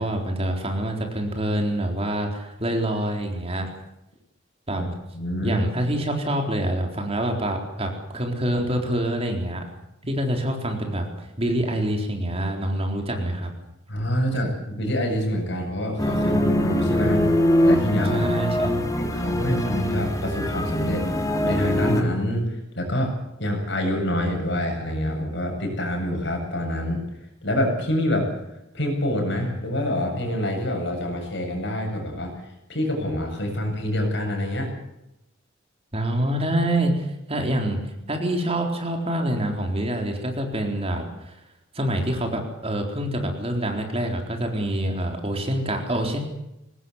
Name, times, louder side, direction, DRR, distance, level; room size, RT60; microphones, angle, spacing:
voice 1, 0.0-3.7 4.7-4.8 5.4-9.6 10.1-13.5 18.1-18.9 35.9-37.8 38.1-41.3 41.7-46.2, right 1 dB, 30° right, 3 dB, 4.0 m, -26 dB
voice 2, 5.1-5.6 13.9-18.3 19.0-23.1 23.4-27.0 27.4-28.3 28.7-32.4 32.7-34.7, equal, 60° left, 2 dB, 7.8 m, -26 dB
sound 1, 16.0-22.0, left 1 dB, 15° left, 2.9 m, -23 dB
23.0 x 19.0 x 8.1 m, 0.87 s
head